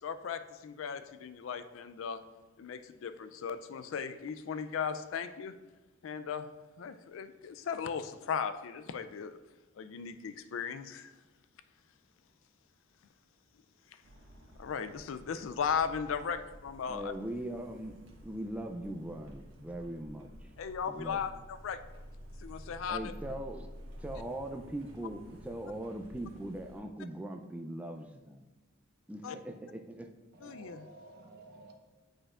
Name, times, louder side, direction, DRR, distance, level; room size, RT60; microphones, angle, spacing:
voice 1, 0.0-2.2 2.6-5.6 6.0-9.4 9.8-11.1 14.6-17.1 20.6-21.8 22.4-23.1 29.2-29.4 30.4-30.8, left 6 dB, 80° left, 0.4 m, -37 dB
sound 1, 14.0-26.8, equal, 80° right, 1.2 m, -51 dB
voice 2, 16.9-18.0 18.2-20.3 20.9-21.2 22.9-23.7 24.0-28.5 29.1-30.1, right 1 dB, 5° right, 0.3 m, -40 dB
voice 3, 30.3-31.7, right 2 dB, 50° right, 0.7 m, -52 dB
8.6 x 5.0 x 2.4 m
head